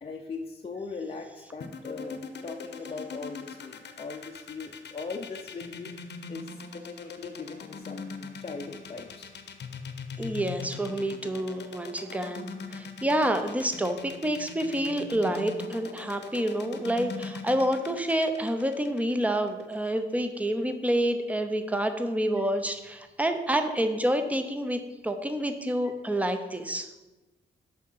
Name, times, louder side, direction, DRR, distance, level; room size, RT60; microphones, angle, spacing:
voice 1, 0.0-9.3 25.8-25.9, left 4 dB, 30° left, 0 dB, 0.6 m, -40 dB
sound 1, 1.6-19.7, left 5 dB, 65° left, 0.8 m, -41 dB
voice 2, 10.2-26.9, right 1 dB, 5° right, 7 dB, 0.7 m, -28 dB
6.3 x 5.4 x 5.6 m, 1.1 s
cardioid pair, 105°, 19 cm